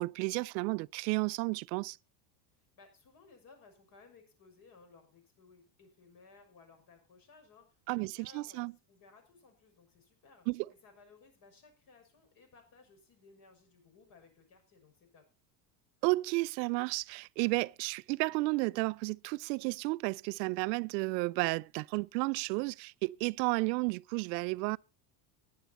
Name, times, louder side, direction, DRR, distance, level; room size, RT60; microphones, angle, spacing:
voice 1, 0.0-2.0 7.9-8.7 10.5-10.7 16.0-24.8, right 25 dB, 85° right, 0.6 m, -32 dB
voice 2, 2.6-10.5 10.8-15.2, left 4 dB, 40° left, 6.3 m, -60 dB
15.5 x 10.5 x 4.2 m
cardioid pair, 145°, 49 cm